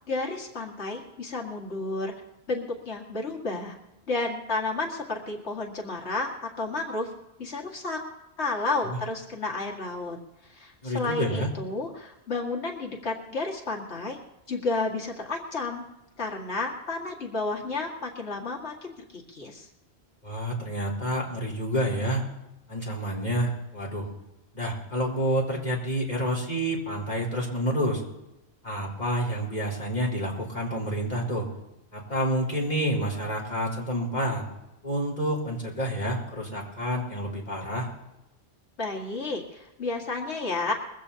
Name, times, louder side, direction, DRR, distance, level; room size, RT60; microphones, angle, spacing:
voice 1, 0.1-2.1 2.5-3.8 4.1-7.1 7.4-8.0 8.4-10.2 10.4-14.2 14.5-15.8 16.2-19.7 38.8-40.7, left 3 dB, 85° left, 0 dB, 2.3 m, -31 dB
voice 2, 10.8-11.5 20.2-22.2 22.7-24.1 24.5-28.0 28.6-31.5 31.9-34.4 34.8-37.9, equal, 40° left, -3 dB, 4.2 m, -28 dB
21.5 x 15.5 x 2.9 m, 0.92 s
omnidirectional pair, 1.1 m